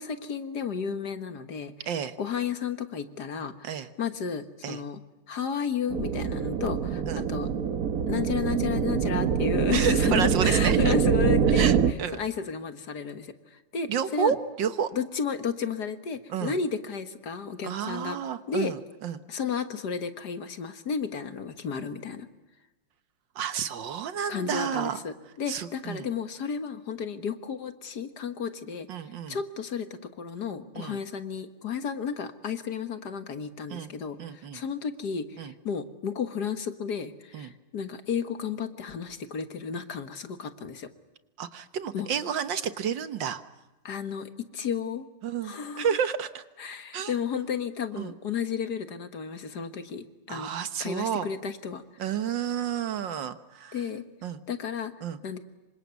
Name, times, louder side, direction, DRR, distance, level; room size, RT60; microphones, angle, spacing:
voice 1, 0.0-5.0 5.3-7.5 8.1-11.7 12.1-14.4 14.9-18.2 18.5-18.7 19.3-22.3 24.3-40.9 41.9-42.1 43.8-45.1 45.4-45.9 46.6-50.5 50.8-52.0 53.7-54.0 54.5-54.9 55.2-55.4, left 6 dB, 60° left, 10 dB, 1.9 m, -33 dB
voice 2, 1.9-2.2 3.6-3.9 4.6-4.8 7.1-7.3 9.7-10.9 11.5-12.2 13.9-14.9 16.3-16.6 17.6-19.2 23.4-25.0 25.5-26.1 28.9-29.4 30.7-31.0 33.7-33.9 34.2-34.6 35.4-35.5 37.3-37.5 41.4-43.4 45.2-46.4 46.9-47.1 48.0-48.1 50.3-51.3 52.0-53.8 54.2-54.4 55.0-55.2, right 8 dB, 70° right, 11 dB, 1.8 m, -30 dB
sound 1, 5.9-11.9, right 7 dB, 55° right, 1.5 m, -24 dB
27.0 x 25.0 x 8.3 m, 1.1 s
omnidirectional pair, 2.1 m